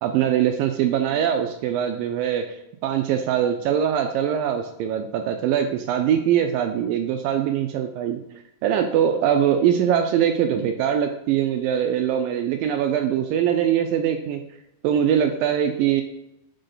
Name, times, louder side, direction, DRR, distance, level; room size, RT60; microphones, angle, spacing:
voice 1, 0.0-8.2 8.6-14.4 14.8-16.0, right 9 dB, 85° right, 5 dB, 2.0 m, -22 dB
6.6 x 6.4 x 3.9 m, 0.86 s
omnidirectional pair, 4.5 m